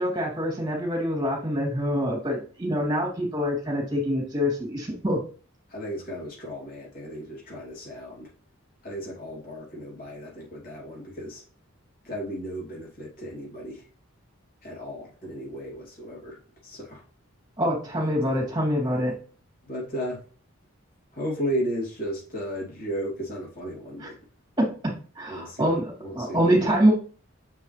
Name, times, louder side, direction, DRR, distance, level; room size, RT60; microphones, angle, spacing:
voice 1, 0.0-5.2 17.6-19.1 24.0-24.1 24.6-26.9, equal, 20° right, -2 dB, 2.9 m, -25 dB
voice 2, 5.7-8.3 8.8-11.4 12.0-13.9 14.6-17.0 18.2-18.4 19.6-20.2 21.1-24.2 25.3-26.7, equal, 40° left, -4 dB, 3.1 m, -34 dB
7.1 x 5.5 x 3.3 m, 0.39 s
head